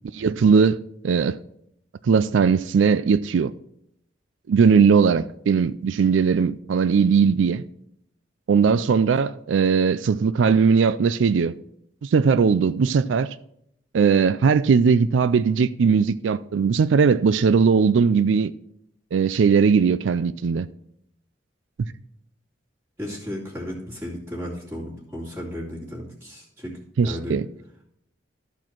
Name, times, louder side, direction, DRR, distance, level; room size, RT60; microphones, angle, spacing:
voice 1, 0.1-0.8 1.0-1.4 2.0-3.5 4.5-7.6 8.5-11.6 12.0-13.3 13.9-18.5 19.1-20.7 27.0-27.5, right 5 dB, 90° right, 0.4 m, -19 dB
voice 2, 23.0-26.7 27.0-27.4, left 1 dB, 15° right, 2.7 m, -34 dB
13.5 x 4.5 x 5.9 m
head